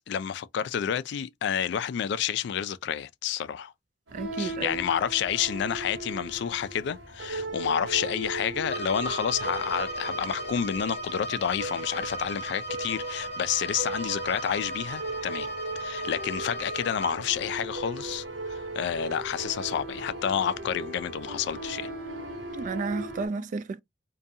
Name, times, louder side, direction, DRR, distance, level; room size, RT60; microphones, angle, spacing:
voice 1, 0.1-3.7 4.4-15.5 15.8-21.9, left 8 dB, 65° left, 0.3 m, -29 dB
voice 2, 4.1-4.8 22.5-23.8, right 4 dB, 45° right, 0.3 m, -32 dB
sound 1, 4.1-23.3, right 2 dB, 90° right, 0.9 m, -38 dB
Bowed string instrument, 8.6-17.2, right 1 dB, 35° left, 0.9 m, -36 dB
2.5 x 2.3 x 2.6 m
head